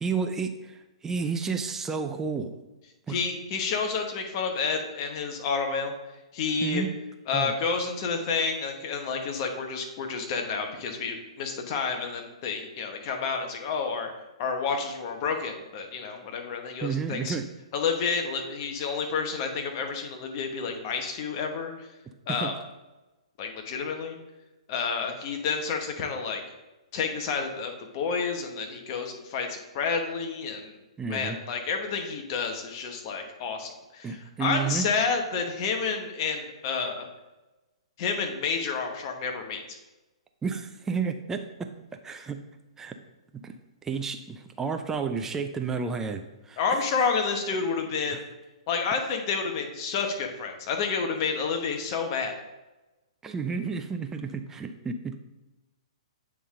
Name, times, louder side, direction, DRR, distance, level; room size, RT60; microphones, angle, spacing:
voice 1, 0.0-0.8 1.0-2.6 3.1-3.2 6.6-6.9 7.3-7.5 16.8-17.5 22.3-22.5 31.0-31.4 34.0-34.9 40.4-41.7 42.0-42.4 42.8-42.9 43.4-43.5 43.8-46.2 46.5-46.6 48.1-48.2 53.2-55.2, right 5 dB, 15° right, 6 dB, 0.4 m, -31 dB
voice 2, 3.1-5.9 6.3-6.8 7.3-14.1 14.4-17.4 17.7-21.9 22.3-22.5 23.4-24.2 24.7-26.4 26.9-30.8 31.1-37.1 38.0-39.8 46.6-48.2 48.7-52.3, left 5 dB, 40° left, 3 dB, 1.1 m, -30 dB
8.4 x 3.6 x 3.7 m, 1.1 s
hypercardioid pair, 125°, 3 cm